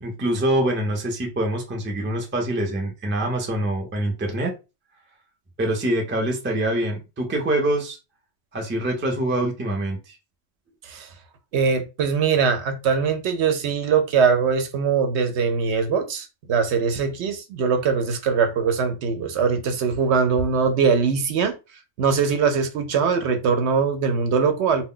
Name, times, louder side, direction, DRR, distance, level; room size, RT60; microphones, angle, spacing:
voice 1, 0.0-4.5 5.6-8.0 8.5-10.2, right 1 dB, 15° right, 0.4 m, -25 dB
voice 2, 11.5-21.5 22.0-24.8, right 6 dB, 70° right, 0.8 m, -22 dB
2.2 x 2.1 x 3.7 m
omnidirectional pair, 1.3 m